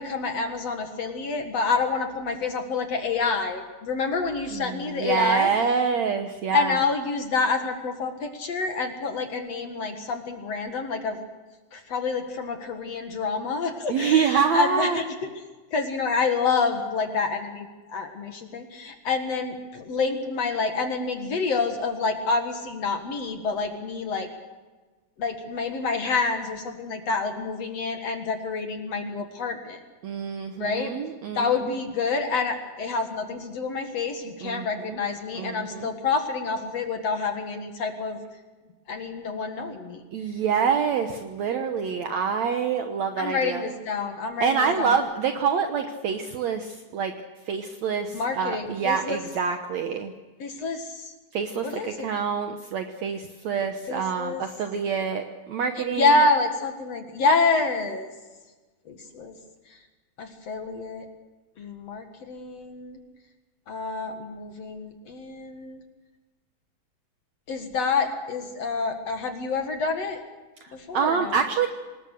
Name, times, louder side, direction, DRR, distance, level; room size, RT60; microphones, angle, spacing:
voice 1, 0.0-5.5 6.5-11.2 11.7-15.3 15.7-24.3 25.2-29.8 30.6-30.9 31.3-38.2 38.9-40.0 43.2-45.0 48.1-49.2 50.4-51.1 51.6-52.0 53.9-54.4 55.8-58.1 58.9-59.4 59.7-59.8 60.2-61.1 61.6-63.0 63.7-65.8 67.5-70.2 70.7-71.4, left 4 dB, 55° left, 5 dB, 2.5 m, -27 dB
voice 2, 4.5-6.8 13.9-15.0 30.0-31.5 34.4-35.0 35.4-35.9 40.1-43.6 44.4-47.1 47.5-50.1 51.3-56.1 70.6-71.7, right 6 dB, 65° right, 6 dB, 2.1 m, -26 dB
25.5 x 20.0 x 6.6 m, 1.3 s
omnidirectional pair, 3.9 m